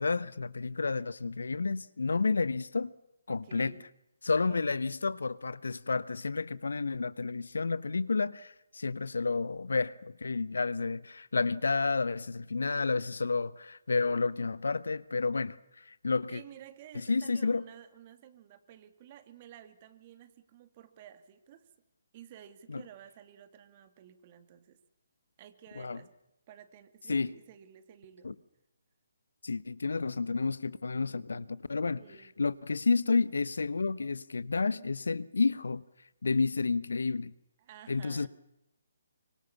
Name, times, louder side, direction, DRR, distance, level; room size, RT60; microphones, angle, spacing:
voice 1, 0.0-2.9 3.3-3.7 4.2-15.6 16.0-16.4 17.1-17.6 22.7-22.8 25.8-26.0 27.1-27.3 28.2-28.3 29.4-32.0 32.4-35.8 36.2-37.3 37.9-38.3, left 4 dB, 75° left, 1.0 m, -30 dB
voice 2, 3.3-3.9 4.4-4.7 16.3-21.7 22.1-24.8 25.4-26.1 26.5-28.4 32.0-32.3 37.6-38.3, right 10 dB, 35° right, 2.4 m, -53 dB
25.0 x 24.5 x 7.2 m
figure-of-eight pair, 145°, 0 cm